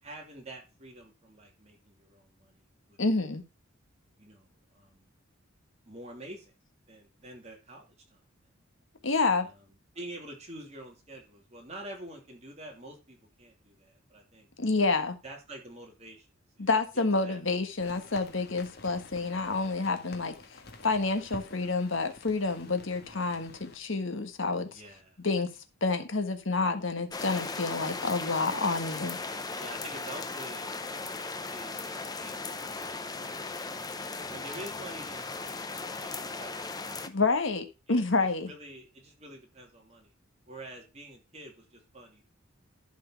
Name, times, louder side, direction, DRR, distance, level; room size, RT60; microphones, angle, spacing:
voice 1, 0.0-3.0 4.2-5.1 5.8-6.5 6.9-8.2 9.2-14.5 15.2-16.3 16.6-16.7 16.9-17.4 24.7-25.2 26.7-27.0 29.6-30.7 31.5-33.6 34.3-36.7 37.9-40.1 40.5-42.2, right 1 dB, 30° right, 0 dB, 3.0 m, -47 dB
voice 2, 3.0-3.4 9.0-9.5 14.6-15.1 16.6-20.3 20.8-24.8 25.2-25.5 25.8-29.2 37.1-38.5, left 3 dB, 65° left, 7 dB, 1.5 m, -28 dB
sound 1, 17.8-23.8, left 2 dB, 50° left, 1.7 m, -49 dB
sound 2, 27.1-37.1, left 3 dB, 20° left, 0.7 m, -37 dB
11.5 x 4.6 x 5.9 m, 0.29 s
head